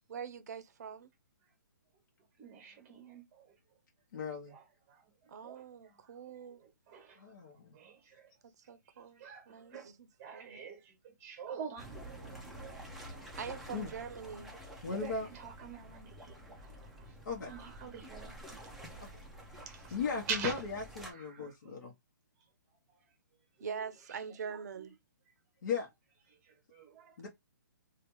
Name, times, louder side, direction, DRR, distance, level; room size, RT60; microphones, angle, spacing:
voice 1, 0.1-1.1 5.3-6.6 8.7-10.1 10.3-10.6 13.3-14.5 23.6-24.9, right 7 dB, 55° right, 0.5 m, -44 dB
voice 2, 2.4-3.5 4.5-7.2 7.7-8.3 8.9-9.9 10.2-13.3 13.7-13.9 14.9-17.1 17.5-18.3 18.6-18.8 19.7-20.0 20.3-20.6 21.1-21.8 23.6-24.2 24.5-24.9 26.3-27.3, right 6 dB, 20° right, 0.8 m, -46 dB
voice 3, 4.1-4.5 7.2-7.8 13.7-13.9 14.8-15.3 17.2-17.5 19.0-19.1 19.9-21.9 25.6-25.9 27.2-27.3, left 5 dB, 60° left, 1.0 m, -37 dB
sound 1, 11.8-21.1, right 1 dB, ahead, 0.4 m, -49 dB
3.2 x 2.4 x 3.0 m
hypercardioid pair, 165°, 11 cm